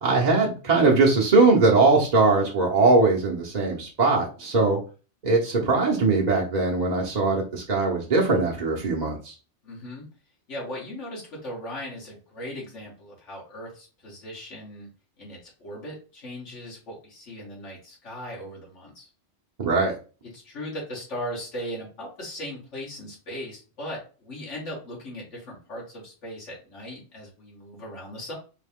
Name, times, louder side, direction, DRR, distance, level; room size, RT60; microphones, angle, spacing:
voice 1, 0.0-4.8 5.2-9.3 19.6-19.9, right 3 dB, 40° right, -3 dB, 0.8 m, -21 dB
voice 2, 9.6-10.0 10.5-14.9 15.2-19.1 20.3-28.4, equal, 85° left, -4 dB, 1.8 m, -38 dB
3.7 x 2.8 x 3.5 m, 0.35 s
omnidirectional pair, 1.2 m